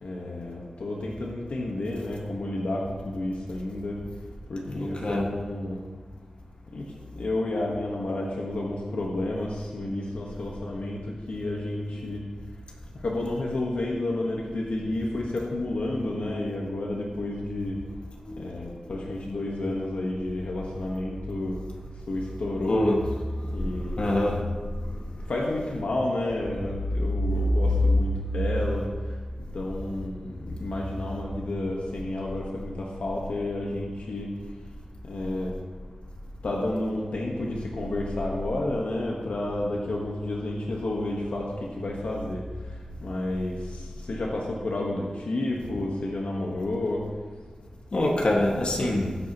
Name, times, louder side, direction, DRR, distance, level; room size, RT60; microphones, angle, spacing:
voice 1, 0.0-4.0 4.5-5.8 6.7-6.8 7.1-12.2 13.0-17.7 18.4-21.6 22.1-22.8 23.5-24.3 25.3-28.9 29.5-34.3 35.1-35.5 36.4-41.5 41.8-42.4 43.0-43.6 44.1-47.0, left 1 dB, 80° left, -2 dB, 1.4 m, -30 dB
voice 2, 4.7-5.3 18.3-18.5 22.7-23.0 23.6-24.4 47.9-49.2, left 1 dB, 50° left, -1 dB, 2.0 m, -25 dB
18.5 x 8.2 x 3.1 m, 1.4 s
wide cardioid pair, 110°, 2 cm